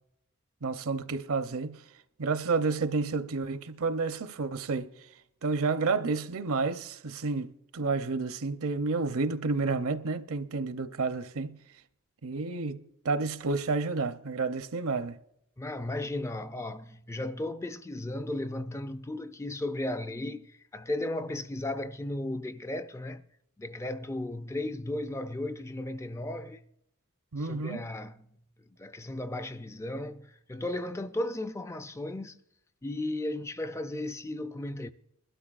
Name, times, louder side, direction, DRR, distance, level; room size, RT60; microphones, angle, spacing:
voice 1, 0.6-1.8 2.2-4.9 5.4-11.6 12.2-15.2 27.3-27.8, right 4 dB, 65° right, 0.7 m, -30 dB
voice 2, 15.6-23.2 23.6-26.6 27.4-28.3 28.7-32.4 32.8-34.9, left 1 dB, 10° left, 0.3 m, -35 dB
22.0 x 12.5 x 2.4 m
head